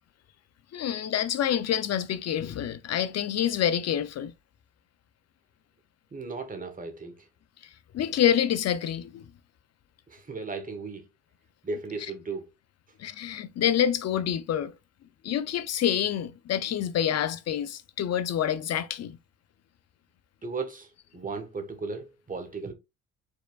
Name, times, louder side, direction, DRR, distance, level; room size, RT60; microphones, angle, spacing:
voice 1, 0.7-4.3 7.9-9.3 13.0-14.7 15.2-19.2, left 10 dB, 55° left, 0.5 m, -27 dB
voice 2, 6.1-7.3 10.1-11.1 11.6-12.5 20.4-22.7, right 4 dB, 25° right, 1.4 m, -36 dB
4.9 x 4.4 x 2.4 m
cardioid pair, 90°, 30 cm